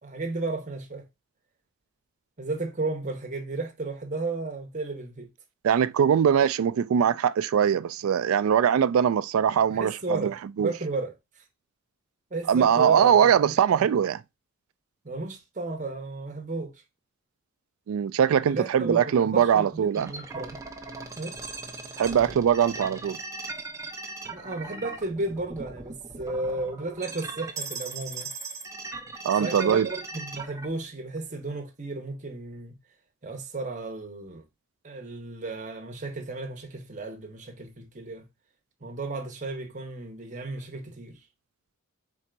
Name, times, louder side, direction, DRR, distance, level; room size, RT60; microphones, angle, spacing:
voice 1, 0.0-1.0 2.4-5.3 9.7-11.1 12.3-13.9 15.0-16.7 18.4-20.6 21.2-21.4 24.3-28.3 29.4-32.7 33.2-34.4 34.8-38.2 38.8-41.2, right 2 dB, 35° right, 1.0 m, -34 dB
voice 2, 5.6-10.7 12.5-14.2 17.9-20.1 22.0-23.2 29.2-29.9, right 8 dB, 75° right, 0.3 m, -22 dB
sound 1, 19.9-30.7, right 3 dB, 15° right, 0.7 m, -39 dB
4.4 x 4.2 x 2.4 m
head